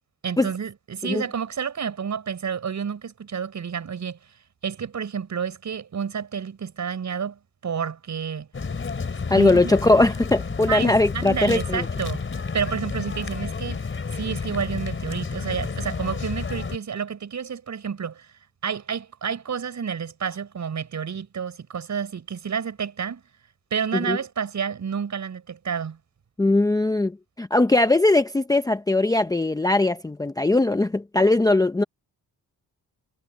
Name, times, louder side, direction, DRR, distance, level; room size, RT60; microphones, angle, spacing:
voice 1, 0.2-4.2 4.6-8.5 9.3-9.6 10.7-12.2 12.5-13.8 14.1-18.3 18.6-23.2 23.7-26.0, right 7 dB, 50° right, 5.5 m, -30 dB
sound 1, 8.5-16.8, left 5 dB, 30° left, 4.0 m, -30 dB
voice 2, 9.3-11.9 23.9-24.2 26.4-31.8, left 2 dB, 10° left, 0.7 m, -20 dB
wide cardioid pair, 135°, 38 cm